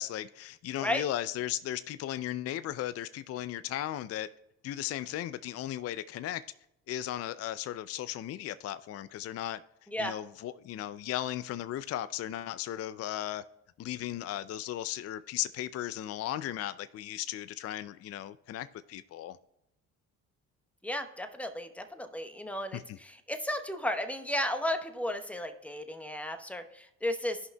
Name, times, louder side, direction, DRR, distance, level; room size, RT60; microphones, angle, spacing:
voice 1, 0.0-4.3 4.6-6.4 6.9-9.6 10.0-13.4 13.8-19.4 22.7-23.0, left 12 dB, 45° left, 0.4 m, -36 dB
voice 2, 20.8-27.4, left 1 dB, 5° left, 1.0 m, -34 dB
14.5 x 5.5 x 2.2 m
supercardioid pair, 65°, 37 cm